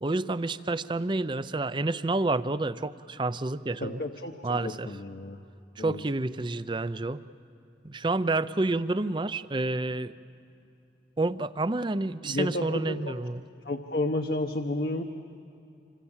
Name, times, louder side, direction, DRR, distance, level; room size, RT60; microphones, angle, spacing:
voice 1, 0.0-4.0 4.4-4.9 5.8-7.2 7.8-10.1 11.2-13.4, right 2 dB, 25° right, 14 dB, 0.5 m, -29 dB
voice 2, 3.8-5.4 5.8-6.0 12.2-13.1 13.6-15.0, left 2 dB, 55° left, 3 dB, 1.0 m, -31 dB
27.0 x 26.0 x 7.3 m, 2.8 s
head